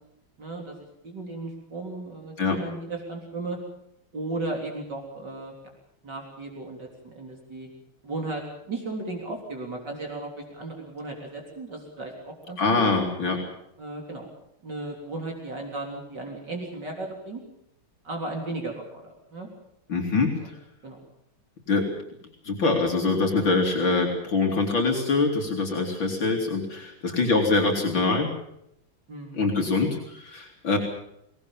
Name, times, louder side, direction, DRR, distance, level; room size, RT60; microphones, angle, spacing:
voice 1, 0.4-3.6 4.1-5.5 6.0-7.7 8.0-12.9 13.8-14.3 14.6-17.4 18.0-19.5 20.4-20.5 20.8-21.0 29.1-29.4, right 2 dB, 55° right, 1 dB, 4.2 m, -35 dB
voice 2, 12.6-13.4 19.9-20.5 21.7-21.9 22.4-28.3 29.3-30.8, left 3 dB, 65° left, 1 dB, 3.7 m, -24 dB
24.5 x 18.5 x 7.2 m, 0.77 s
omnidirectional pair, 2.3 m